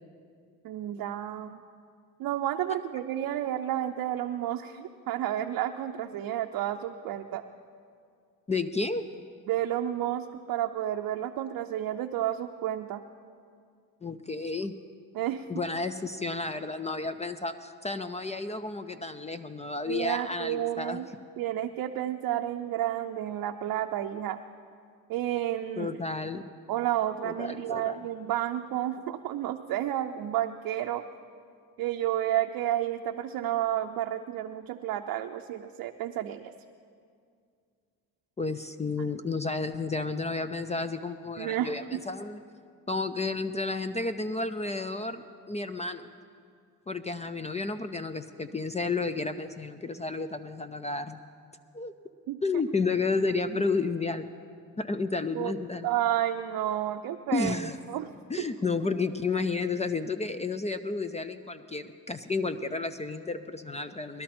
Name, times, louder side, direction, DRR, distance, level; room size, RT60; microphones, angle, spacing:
voice 1, 0.6-1.6 2.2-7.4 9.5-13.0 15.1-15.4 19.9-21.1 21.4-24.4 25.1-26.0 26.7-31.0 31.8-36.5 41.4-42.0 52.3-52.4 55.3-55.5 55.8-58.1 58.4-58.5, right 12 dB, 65° right, 4 dB, 0.6 m, -31 dB
voice 2, 8.5-9.1 14.0-14.7 15.5-21.0 25.8-26.4 27.2-28.0 38.4-42.4 42.9-46.1 46.9-51.2 51.7-51.9 52.4-54.3 54.8-55.9 57.3-57.8 58.3-64.2, left 3 dB, 20° left, 10 dB, 0.5 m, -31 dB
20.0 x 12.0 x 4.3 m, 2.2 s
cardioid pair, 90°, 36 cm